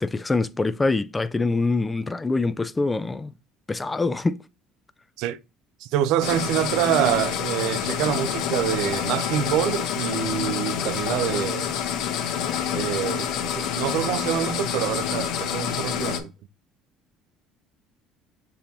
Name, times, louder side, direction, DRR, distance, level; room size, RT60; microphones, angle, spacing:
voice 1, 0.0-3.3 3.7-4.4, left 3 dB, 15° left, 0.3 m, -24 dB
voice 2, 5.8-11.8 12.7-13.3 13.6-16.3, right 11 dB, 75° right, 0.3 m, -26 dB
sound 1, 6.2-16.2, left 8 dB, 70° left, 0.9 m, -27 dB
6.9 x 2.9 x 2.6 m
supercardioid pair, 95°, 0 cm